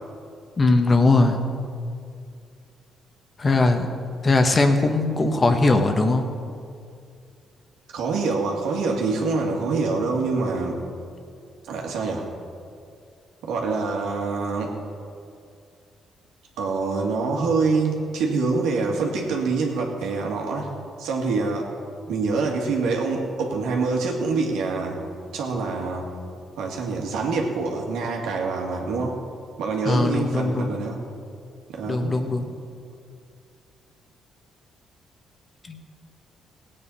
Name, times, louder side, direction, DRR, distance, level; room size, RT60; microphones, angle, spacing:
voice 1, 0.6-1.4 3.4-3.9 4.2-6.2 29.8-30.7 31.9-32.5 35.6-35.8, left 2 dB, 30° left, 6 dB, 1.3 m, -20 dB
voice 2, 7.9-10.8 11.6-12.3 13.4-14.8 16.6-20.7 21.0-21.7 22.1-25.0 25.3-26.1 26.6-29.2 29.6-31.0 31.7-32.2, right 4 dB, 85° right, 0 dB, 2.2 m, -25 dB
17.0 x 8.9 x 5.6 m, 2.3 s
cardioid pair, 90°, 0 cm